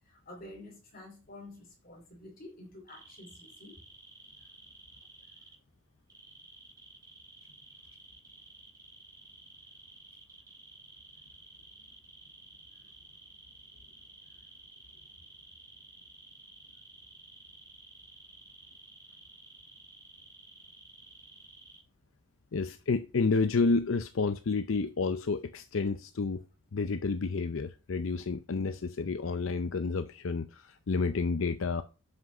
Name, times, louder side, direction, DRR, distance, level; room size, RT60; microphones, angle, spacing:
voice 1, 0.0-3.8, left 1 dB, 40° left, 2.7 m, -49 dB
sound 1, 2.9-5.5 6.1-21.8, right 2 dB, 15° right, 2.8 m, -53 dB
voice 2, 22.5-26.4 26.7-31.8, left 4 dB, 70° left, 0.5 m, -30 dB
7.9 x 5.9 x 5.4 m
head